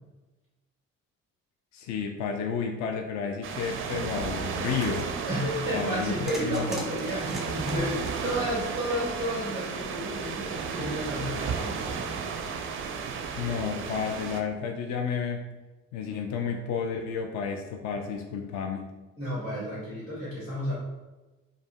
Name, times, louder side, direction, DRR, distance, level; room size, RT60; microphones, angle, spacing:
voice 1, 1.7-5.1 5.7-6.7 13.4-15.4 15.9-18.9, left 6 dB, 45° left, 4 dB, 0.4 m, -31 dB
sound 1, 3.4-14.4, right 5 dB, 35° right, 0.4 m, -34 dB
sound 2, 4.8-5.1 6.3-8.8, right 1 dB, ahead, 0.7 m, -40 dB
voice 2, 5.3-12.2 19.2-20.7, equal, 85° left, -9 dB, 1.3 m, -32 dB
4.7 x 2.1 x 2.3 m, 1.1 s
figure-of-eight pair, 40°, 38 cm